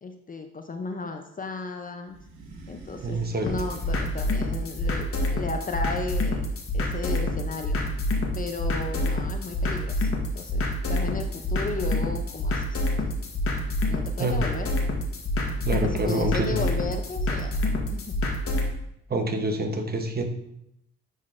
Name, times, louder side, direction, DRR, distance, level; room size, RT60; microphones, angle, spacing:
voice 1, 0.0-2.2 2.7-6.4 6.7-7.8 8.4-10.1 10.3-13.1 13.9-14.7 15.7-17.6 17.9-18.1, left 3 dB, 30° left, 5 dB, 0.5 m, -34 dB
sound 1, 2.1-5.1 5.6-6.6, right 2 dB, 80° right, 1.3 m, -45 dB
voice 2, 3.0-3.5 14.2-14.4 15.6-16.6 19.1-20.2, right 2 dB, 30° right, 4 dB, 0.9 m, -27 dB
sound 2, 3.5-18.7, left 1 dB, 50° left, 1.3 m, -27 dB
10.0 x 3.9 x 2.5 m, 0.79 s
cardioid pair, 90°, 30 cm